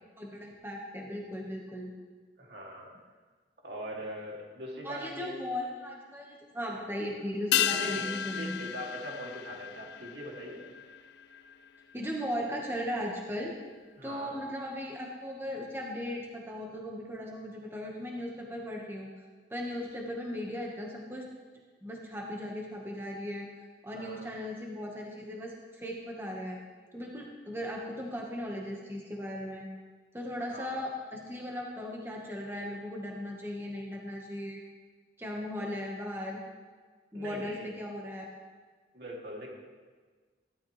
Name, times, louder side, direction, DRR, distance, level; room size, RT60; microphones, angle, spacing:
voice 1, 0.2-1.9 4.8-8.6 11.9-13.5 14.0-19.1 19.5-21.3 21.8-23.5 23.8-26.6 26.9-29.7 30.1-34.6 35.2-36.4 37.1-38.3, equal, 10° right, -1 dB, 1.5 m, -37 dB
voice 2, 2.4-2.9 3.6-5.4 7.7-10.6 14.0-14.4 23.9-24.3 30.5-30.8 35.6-35.7 37.1-37.7 38.9-39.5, equal, 55° right, -3 dB, 2.8 m, -41 dB
sound 1, 7.5-12.2 12.5-12.6, left 10 dB, 65° left, 0.5 m, -34 dB
16.0 x 12.0 x 3.3 m, 1.5 s
head